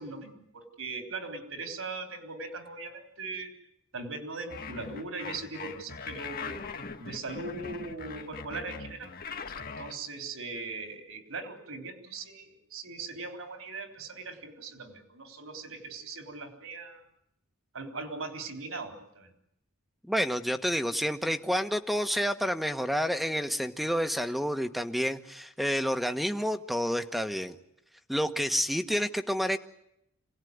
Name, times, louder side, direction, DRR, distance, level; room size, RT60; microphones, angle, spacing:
voice 1, 0.0-3.5 3.9-6.6 7.0-9.1 9.6-17.1 17.7-19.3, right 3 dB, 85° right, 5 dB, 3.7 m, -40 dB
sound 1, 4.5-10.0, left 4 dB, 45° left, 1.8 m, -40 dB
voice 2, 20.1-27.6 28.1-29.6, equal, ahead, 7 dB, 1.3 m, -29 dB
27.0 x 17.5 x 9.6 m, 0.80 s
head